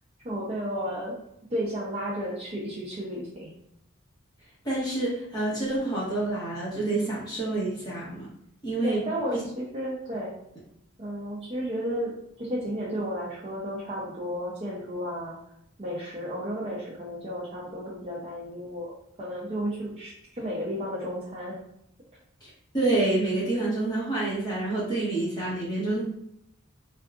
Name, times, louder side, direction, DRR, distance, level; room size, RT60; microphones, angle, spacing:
voice 1, 0.2-1.2 1.5-3.5 8.8-10.4 11.0-12.1 12.4-15.4 15.8-18.9 19.2-21.6, equal, 30° right, -6 dB, 0.5 m, -33 dB
voice 2, 4.6-8.3 8.6-9.0 9.3-9.4 22.4-26.0, right 2 dB, 20° left, -7 dB, 1.1 m, -28 dB
3.6 x 2.3 x 2.3 m, 0.75 s
head